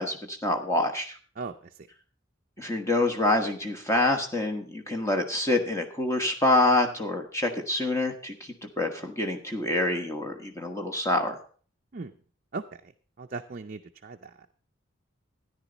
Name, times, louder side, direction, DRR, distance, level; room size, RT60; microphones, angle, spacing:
voice 1, 0.0-1.2 2.6-8.3 8.6-11.4, left 2 dB, 15° left, 3 dB, 1.4 m, -26 dB
voice 2, 13.2-14.3, right 4 dB, 40° right, 4 dB, 0.5 m, -37 dB
13.5 x 10.0 x 4.0 m, 0.42 s
head